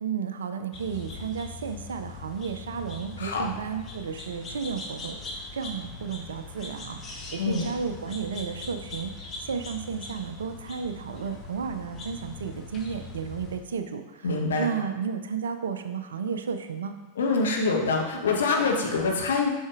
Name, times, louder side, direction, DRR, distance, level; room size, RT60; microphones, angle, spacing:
voice 1, 0.0-9.1 9.4-17.0, right 6 dB, 65° right, 8 dB, 0.4 m, -33 dB
sound 1, 0.7-13.6, left 3 dB, 25° left, 1.0 m, -41 dB
voice 2, 7.4-7.7 14.2-14.7 17.2-19.5, left 4 dB, 65° left, 1 dB, 1.0 m, -25 dB
7.8 x 5.8 x 2.5 m, 1.1 s
figure-of-eight pair, 90°, 0 cm